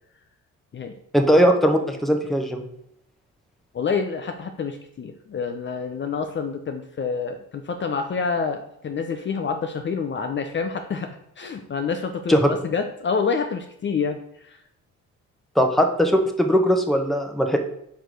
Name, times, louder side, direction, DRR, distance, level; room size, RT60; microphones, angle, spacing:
voice 1, 1.1-2.6 12.3-12.4 15.6-17.6, equal, ahead, 4 dB, 0.9 m, -19 dB
voice 2, 3.7-14.2, left 5 dB, 40° left, 6 dB, 0.7 m, -27 dB
4.7 x 4.6 x 5.1 m, 0.74 s
cardioid pair, 90°, 30 cm